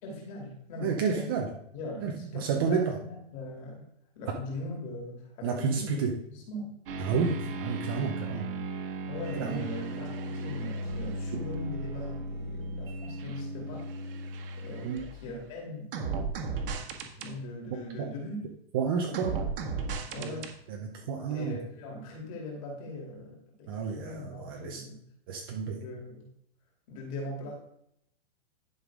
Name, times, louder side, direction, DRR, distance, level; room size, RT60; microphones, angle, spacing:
voice 1, 0.0-3.9 4.1-6.7 9.1-13.9 14.6-15.9 17.2-18.4 19.1-19.5 20.1-20.6 21.3-25.0 25.8-26.3 26.9-27.5, left 1 dB, 30° left, -1 dB, 2.8 m, -40 dB
voice 2, 0.8-1.5 2.0-3.0 5.4-6.1 7.0-8.5 9.3-9.6 14.8-15.0 18.7-19.3 20.2-20.4 20.7-20.8 21.1-21.6 23.7-24.8 25.3-25.8, right 6 dB, 20° right, 2 dB, 0.6 m, -30 dB
sound 1, 6.9-15.4 15.9-17.3 19.1-20.5, right 2 dB, 60° right, 1.6 m, -36 dB
11.5 x 5.6 x 3.6 m, 0.72 s
supercardioid pair, 180°, 31 cm